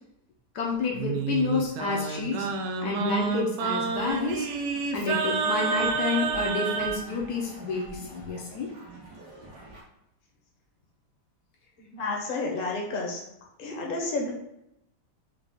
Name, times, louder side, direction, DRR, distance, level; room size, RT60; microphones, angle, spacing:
voice 1, 0.5-2.5 2.8-4.5 4.9-8.7, left 4 dB, 70° left, -1 dB, 1.2 m, -29 dB
Singing, 0.9-7.0, right 5 dB, 75° right, 1.0 m, -29 dB
sound 1, 3.9-9.8, right 1 dB, 90° right, 1.8 m, -47 dB
voice 2, 11.8-13.2 13.6-14.3, left 3 dB, 40° left, -1 dB, 0.9 m, -31 dB
4.7 x 2.4 x 3.7 m, 0.78 s
omnidirectional pair, 1.8 m